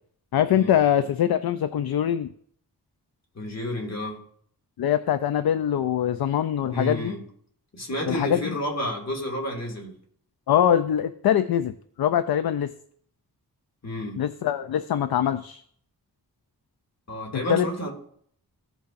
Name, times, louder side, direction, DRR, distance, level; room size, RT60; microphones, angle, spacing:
voice 1, 0.3-2.3 4.8-7.1 8.1-8.5 10.5-11.7 12.0-12.7 14.2-15.6 17.3-17.7, left 10 dB, 70° left, 11 dB, 0.5 m, -23 dB
voice 2, 3.4-4.2 6.7-7.2 7.7-10.0 13.8-14.2 17.1-17.9, equal, 40° left, 0 dB, 2.3 m, -30 dB
15.5 x 5.6 x 2.6 m, 0.63 s
wide cardioid pair, 100°, 39 cm